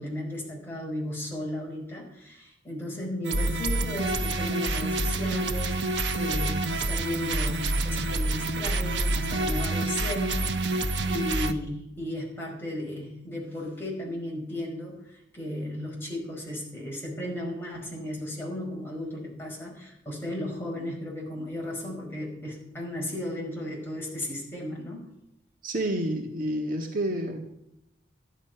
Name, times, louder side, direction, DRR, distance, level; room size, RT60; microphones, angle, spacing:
voice 1, 0.0-25.1, left 1 dB, 15° left, -3 dB, 5.3 m, -35 dB
sound 1, 3.2-11.5, right 2 dB, 75° right, 1.0 m, -27 dB
voice 2, 25.6-27.4, right 1 dB, 50° right, 2 dB, 1.6 m, -29 dB
13.5 x 11.0 x 5.7 m, 0.83 s
head